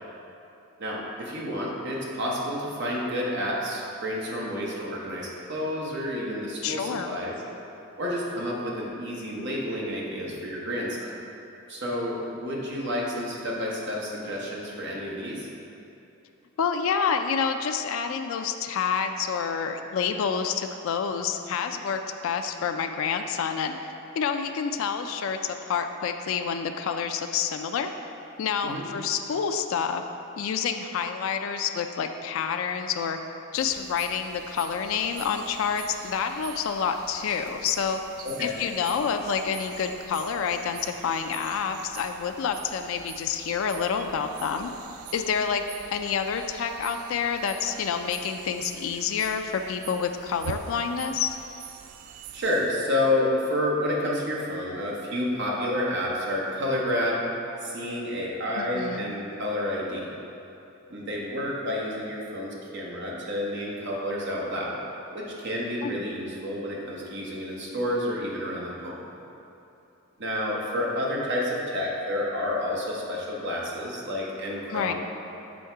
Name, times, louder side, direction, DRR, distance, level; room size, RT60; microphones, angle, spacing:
voice 1, 0.8-7.3 8.0-11.1 11.7-15.5 28.6-28.8 38.2-38.5 52.3-57.3 57.6-60.1 60.9-64.7 65.1-69.0 70.2-74.9, left 1 dB, 55° right, -3 dB, 1.0 m, -29 dB
voice 2, 6.6-7.2 16.6-23.8 24.2-27.9 28.4-30.0 30.4-33.2 33.5-38.0 38.4-44.7 45.1-45.6 45.9-51.3 58.6-59.1 65.8-66.1 74.7-74.9, left 6 dB, 65° left, 6 dB, 0.3 m, -28 dB
sound 1, 33.5-52.7, right 8 dB, 80° right, 0.3 m, -44 dB
6.2 x 3.5 x 4.5 m, 2.9 s
head